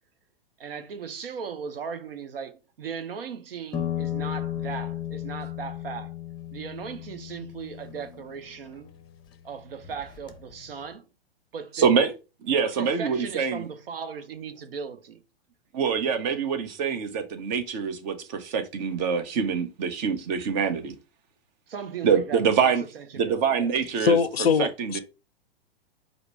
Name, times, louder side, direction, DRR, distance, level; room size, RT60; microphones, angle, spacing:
voice 1, 0.6-6.1 6.5-8.9 9.4-11.0 11.5-11.9 12.7-15.2 21.7-23.7, right 6 dB, 75° right, 0.8 m, -37 dB
sound 1, 3.7-9.3 9.8-10.7, left 11 dB, 15° left, 0.6 m, -35 dB
voice 2, 11.7-12.1 12.4-13.7 15.7-21.0 22.0-22.8 23.1-24.2 24.6-25.0, right 6 dB, 50° right, 1.0 m, -25 dB
voice 3, 24.0-25.0, left 6 dB, 90° left, 0.5 m, -22 dB
4.9 x 2.1 x 4.6 m
hypercardioid pair, 105°, 29 cm